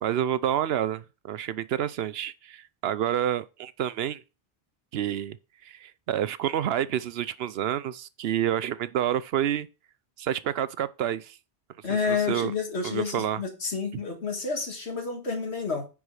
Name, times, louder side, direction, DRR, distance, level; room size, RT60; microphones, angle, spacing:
voice 1, 0.0-4.2 4.9-5.4 5.6-9.7 10.2-11.4 12.1-12.5 12.8-13.4, right 10 dB, 75° right, 0.8 m, -28 dB
voice 2, 11.8-15.9, left 5 dB, 85° left, 2.2 m, -29 dB
9.4 x 4.8 x 4.8 m
omnidirectional pair, 1.1 m